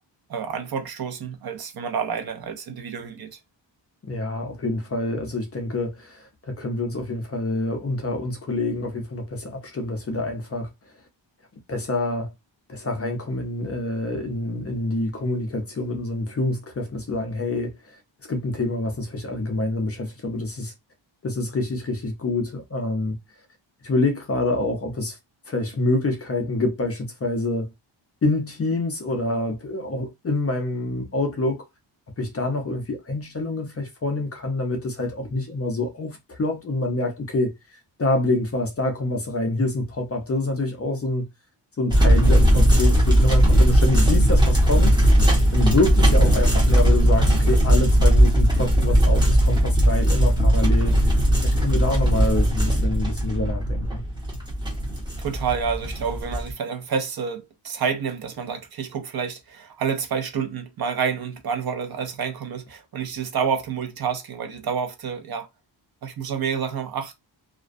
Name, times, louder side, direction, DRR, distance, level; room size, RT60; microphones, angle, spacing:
voice 1, 0.3-3.4 55.2-65.5 66.0-67.1, right 6 dB, 55° right, 0.5 m, -29 dB
voice 2, 4.0-10.7 11.7-12.3 12.7-18.0 18.3-20.7 21.2-23.2 23.8-25.2 25.5-27.7 28.2-31.6 32.2-41.3 41.8-45.2 45.5-50.9 51.4-54.0, left 2 dB, 35° left, 0.5 m, -26 dB
sound 1, 41.9-56.5, equal, 10° right, 0.7 m, -18 dB
2.4 x 2.1 x 2.4 m
wide cardioid pair, 175°, 46 cm